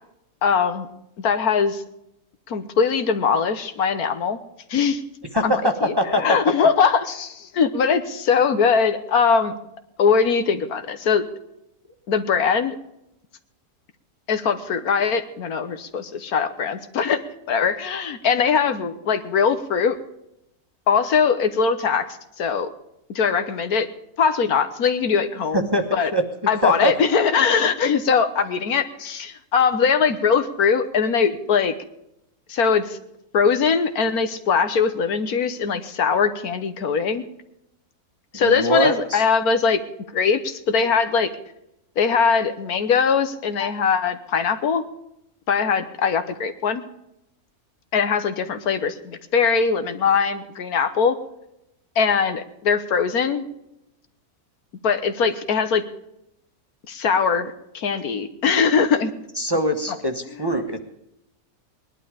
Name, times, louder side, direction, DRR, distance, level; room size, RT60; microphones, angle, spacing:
voice 1, 0.4-0.9 1.2-1.8 2.5-4.4 4.7-5.0 5.4-5.5 5.8-9.5 10.0-11.2 12.1-12.8 14.3-17.2 17.5-20.0 20.9-22.1 22.4-22.7 23.1-23.9 24.2-26.1 26.5-31.7 32.5-33.0 33.3-37.2 38.3-39.8 40.1-41.3 42.0-44.8 45.5-46.9 47.9-51.2 52.0-53.4 54.8-55.8 56.9-59.1 60.4-60.5, left 6 dB, 80° left, 9 dB, 1.6 m, -21 dB
voice 2, 5.3-6.4 25.5-26.2 26.6-26.9 38.3-39.2 59.4-60.8, equal, 15° right, 4 dB, 1.2 m, -22 dB
19.5 x 11.5 x 5.0 m, 0.82 s
omnidirectional pair, 1.6 m